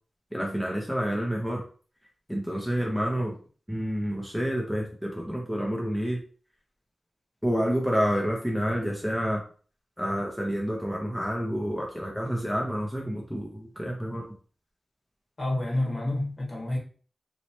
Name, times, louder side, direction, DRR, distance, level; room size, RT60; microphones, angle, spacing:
voice 1, 0.3-1.6 2.3-3.3 3.7-6.2 7.4-9.4 10.0-14.3, equal, 5° left, -2 dB, 0.8 m, -29 dB
voice 2, 15.4-16.8, left 1 dB, 45° left, -3 dB, 1.6 m, -28 dB
3.2 x 3.0 x 2.9 m, 0.41 s
wide cardioid pair, 65°, 0 cm